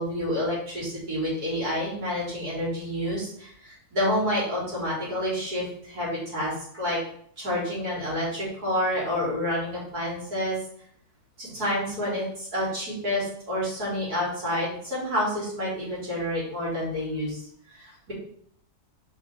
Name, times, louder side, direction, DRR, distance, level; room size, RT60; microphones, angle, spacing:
voice 1, 0.0-7.0 7.4-10.6 11.4-17.4 17.7-18.1, left 1 dB, 65° right, -7 dB, 3.7 m, -29 dB
5.8 x 5.2 x 3.6 m, 0.64 s
omnidirectional pair, 1.7 m